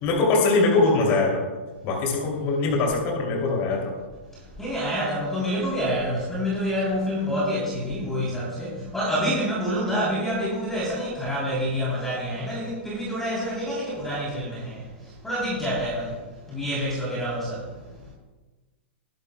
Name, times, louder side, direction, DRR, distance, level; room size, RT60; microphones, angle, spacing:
voice 1, 0.0-1.4 1.8-3.9, left 3 dB, 35° left, -1 dB, 2.7 m, -22 dB
voice 2, 2.0-2.5 4.3-18.0, equal, 5° left, -6 dB, 3.2 m, -28 dB
20.5 x 11.0 x 2.2 m, 1.3 s
supercardioid pair, 165°, 6 cm